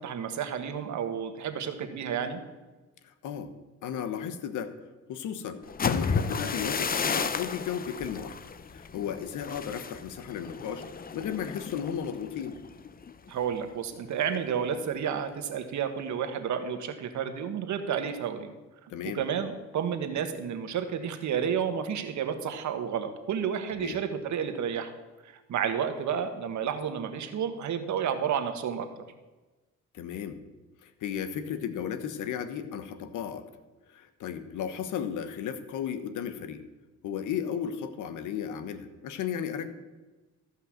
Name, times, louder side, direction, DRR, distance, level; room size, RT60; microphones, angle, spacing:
voice 1, 0.0-2.4 13.3-18.5 19.1-24.9 25.2-29.0, right 8 dB, 70° right, 8 dB, 1.4 m, -31 dB
voice 2, 3.0-3.5 3.8-4.8 5.1-8.4 8.7-10.8 11.1-12.6 18.9-19.2 23.8-24.0 29.9-30.4 30.8-33.5 33.9-36.6 37.0-39.7, left 8 dB, 80° left, 11 dB, 1.1 m, -34 dB
sound 1, 5.6-13.5 13.9-14.2 14.5-14.9, left 5 dB, 30° left, 0.6 m, -33 dB
14.5 x 5.5 x 7.5 m, 1.2 s
cardioid pair, 90°, 30 cm